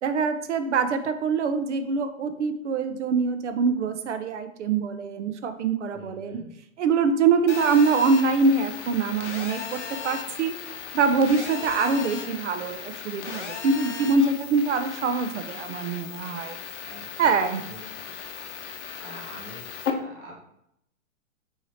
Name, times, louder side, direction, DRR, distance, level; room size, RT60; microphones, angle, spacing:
voice 1, 0.0-6.4 6.8-10.5 10.9-16.6 17.2-17.6, right 4 dB, 60° right, 9 dB, 0.5 m, -24 dB
voice 2, 5.9-6.5 16.8-18.1 18.7-20.4, equal, 10° right, -4 dB, 0.4 m, -45 dB
Telephone, 7.5-19.9, left 7 dB, 60° left, 0.7 m, -37 dB
4.5 x 3.2 x 2.8 m, 0.77 s
hypercardioid pair, 125°, 40 cm